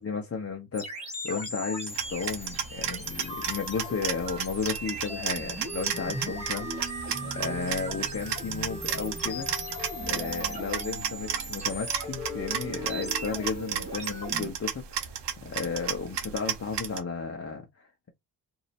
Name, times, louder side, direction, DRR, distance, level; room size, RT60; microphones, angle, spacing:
voice 1, 0.0-15.1 15.4-18.1, left 5 dB, 35° left, 0.8 m, -34 dB
sound 1, 0.7-14.5, equal, 15° right, 1.6 m, -38 dB
sound 2, 1.9-17.0, right 8 dB, 75° right, 0.9 m, -34 dB
3.1 x 2.7 x 4.2 m
wide cardioid pair, 140°, 42 cm